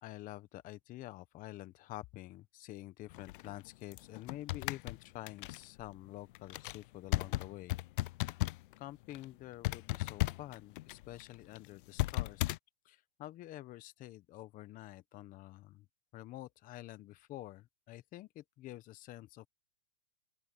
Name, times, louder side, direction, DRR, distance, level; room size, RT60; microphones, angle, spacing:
voice 1, 0.0-7.8 8.8-12.5 12.8-15.8 16.1-19.5, left 15 dB, 25° left, 1.0 m, -48 dB
sound 1, 3.1-8.8 9.0-9.3 9.6-12.6, left 17 dB, 55° left, 0.6 m, -36 dB
open air
hypercardioid pair, 140°, 32 cm